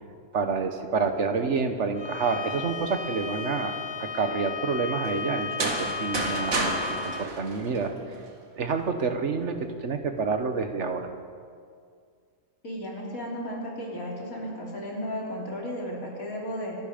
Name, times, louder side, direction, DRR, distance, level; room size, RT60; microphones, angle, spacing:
voice 1, 0.3-7.9 8.5-11.1, right 5 dB, 60° right, 7 dB, 1.5 m, -28 dB
Bowed string instrument, 1.9-7.3, left 5 dB, 40° left, 0.3 m, -34 dB
sound 1, 5.4-8.3, right 2 dB, 75° right, 2.4 m, -31 dB
voice 2, 12.6-16.8, equal, 80° left, -3 dB, 3.7 m, -34 dB
25.5 x 10.5 x 5.2 m, 2.2 s
omnidirectional pair, 1.4 m